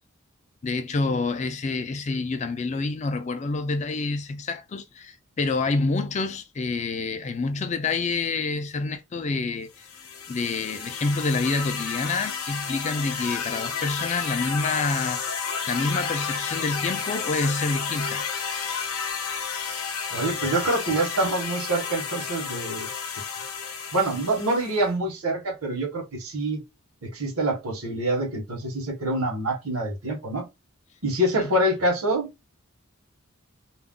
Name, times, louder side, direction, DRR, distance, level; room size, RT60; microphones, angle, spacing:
voice 1, 0.6-9.9 10.3-15.4 15.7-18.2 31.3-31.5, left 3 dB, 30° left, 0.3 m, -27 dB
sound 1, 9.8-24.9, left 6 dB, 90° left, 0.6 m, -31 dB
voice 2, 20.1-22.9 23.9-26.6 27.0-30.5 31.0-32.3, right 1 dB, 80° right, 0.9 m, -26 dB
2.3 x 2.1 x 3.6 m
head